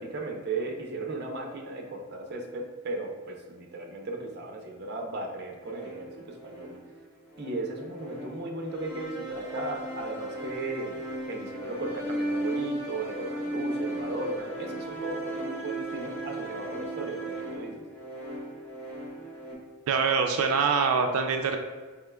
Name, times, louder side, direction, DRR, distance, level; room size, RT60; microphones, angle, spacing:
voice 1, 0.0-6.8 7.4-17.8, right 2 dB, 50° right, 1 dB, 0.6 m, -36 dB
sound 1, 5.6-19.5, right 1 dB, 10° left, 0.9 m, -36 dB
voice 2, 19.9-21.6, right 5 dB, 90° right, 4 dB, 0.3 m, -24 dB
4.8 x 3.6 x 2.2 m, 1.4 s
head